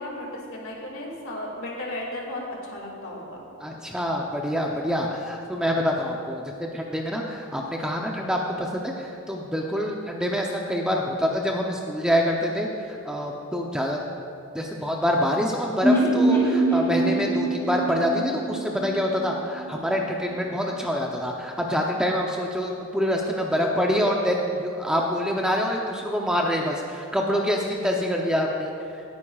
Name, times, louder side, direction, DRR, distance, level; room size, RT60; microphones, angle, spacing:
voice 1, 0.0-3.5, left 1 dB, 60° left, -1 dB, 2.2 m, -35 dB
voice 2, 3.6-14.0 14.5-28.7, equal, 5° right, 0 dB, 0.6 m, -26 dB
sound 1, 15.8-19.7 20.0-20.1 20.3-20.4, right 2 dB, 10° left, 2.2 m, -23 dB
18.5 x 9.4 x 2.4 m, 2.6 s
head